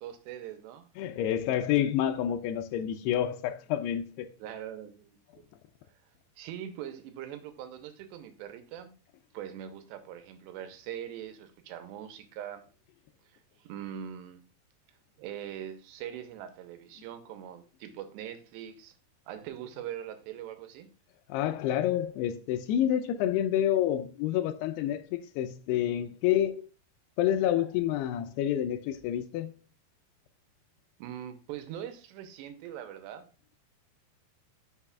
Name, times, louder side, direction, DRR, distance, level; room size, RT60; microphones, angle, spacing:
voice 1, 0.0-0.9 4.4-5.5 6.4-8.9 9.3-12.7 13.3-14.4 15.2-18.9 19.3-20.9 31.0-33.3, right 10 dB, 85° right, 3.0 m, -42 dB
voice 2, 1.0-4.3 21.3-26.5 27.2-29.5, left 11 dB, 85° left, 2.5 m, -28 dB
9.9 x 6.5 x 2.4 m
omnidirectional pair, 4.9 m